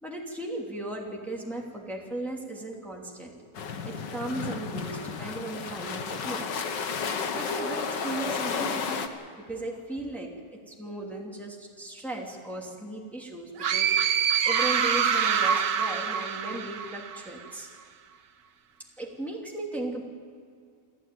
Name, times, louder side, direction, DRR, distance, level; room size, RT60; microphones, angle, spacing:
voice 1, 0.0-3.3 3.8-6.5 7.3-9.1 9.4-17.7 19.0-20.0, right 1 dB, ahead, -2 dB, 2.8 m, -37 dB
sound 1, 3.5-9.1, left 6 dB, 75° left, 2.0 m, -32 dB
sound 2, 13.6-17.3, right 7 dB, 80° right, 1.7 m, -25 dB
29.0 x 13.0 x 9.3 m, 2.2 s
omnidirectional pair, 1.9 m